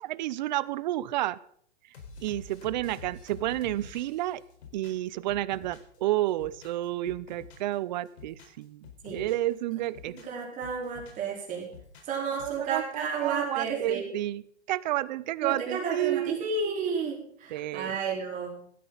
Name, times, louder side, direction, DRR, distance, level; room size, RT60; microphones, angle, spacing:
voice 1, 0.0-1.4 2.2-4.4 4.7-8.9 9.1-10.2 12.4-16.4 17.5-18.0, right 15 dB, 40° right, 19 dB, 0.6 m, -30 dB
sound 1, 1.9-6.0 6.3-7.7 8.1-9.5 9.8-11.3 11.6-12.6, left 5 dB, 70° left, 4.5 m, -48 dB
voice 2, 10.2-11.7 12.1-14.0 15.4-18.6, right 5 dB, 25° right, -2 dB, 4.3 m, -32 dB
17.0 x 13.0 x 4.0 m, 0.64 s
hypercardioid pair, 145°, 34 cm